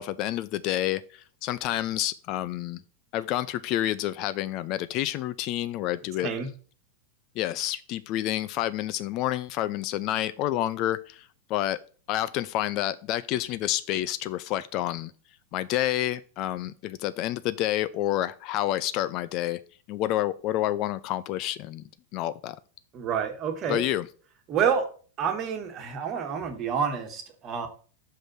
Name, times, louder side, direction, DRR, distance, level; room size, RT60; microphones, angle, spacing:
voice 1, 0.0-2.8 3.1-6.3 7.4-11.8 12.1-15.1 15.5-19.6 19.9-21.8 22.1-22.6 23.7-24.1, left 13 dB, 40° left, 15 dB, 0.4 m, -29 dB
voice 2, 22.9-23.8 24.5-24.9 25.2-27.7, right 7 dB, 35° right, 5 dB, 1.5 m, -28 dB
5.6 x 5.1 x 6.0 m, 0.41 s
figure-of-eight pair, 90°, 0 cm